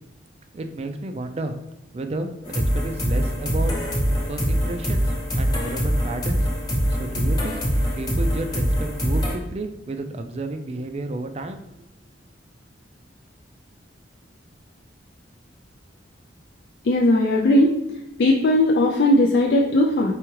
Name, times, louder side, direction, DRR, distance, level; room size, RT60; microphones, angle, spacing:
voice 1, 0.5-1.5 1.9-3.7 4.3-6.5 6.9-11.6, right 2 dB, 30° right, 7 dB, 0.3 m, -32 dB
sound 1, 2.4-9.3, equal, 20° left, 0.8 m, -23 dB
voice 2, 16.8-17.7 18.2-20.1, left 1 dB, 60° left, 0 dB, 0.4 m, -18 dB
4.7 x 3.5 x 3.1 m, 0.89 s
head